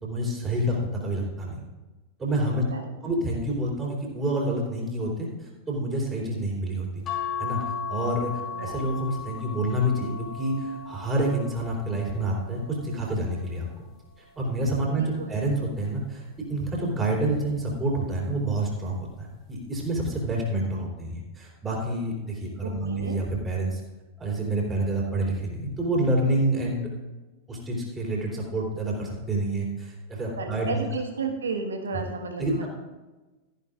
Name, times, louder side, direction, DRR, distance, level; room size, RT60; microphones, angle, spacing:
voice 1, 0.0-1.6 2.2-2.6 3.0-7.0 7.4-7.6 7.9-13.8 14.2-23.8 24.2-26.9 27.5-30.9 32.4-32.7, right 1 dB, 20° right, -2 dB, 3.9 m, -28 dB
sound 1, 7.1-13.7 14.3-15.7 17.0-17.4 17.7-17.8, left 6 dB, 30° left, 2.5 m, -37 dB
voice 2, 8.5-8.9 15.0-15.4 22.6-23.2 30.4-32.7, right 4 dB, 70° right, 3 dB, 1.6 m, -33 dB
14.0 x 11.0 x 2.5 m, 1.2 s
figure-of-eight pair, 90°, 0 cm